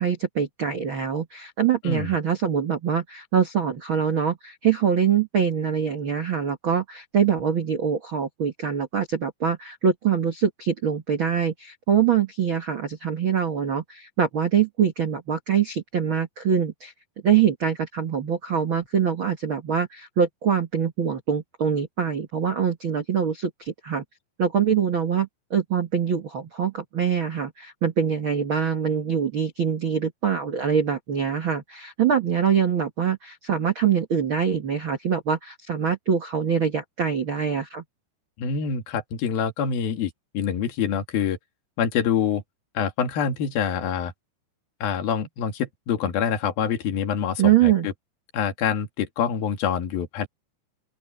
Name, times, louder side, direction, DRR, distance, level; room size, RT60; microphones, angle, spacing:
voice 1, 0.0-16.9 17.2-24.0 24.4-37.8 47.4-47.9, right 7 dB, 90° right, 1.1 m, -24 dB
voice 2, 38.4-41.4 41.8-42.4 42.8-44.1 44.8-47.9 48.3-50.3, left 7 dB, 60° left, 4.0 m, -26 dB
open air
omnidirectional pair, 5.0 m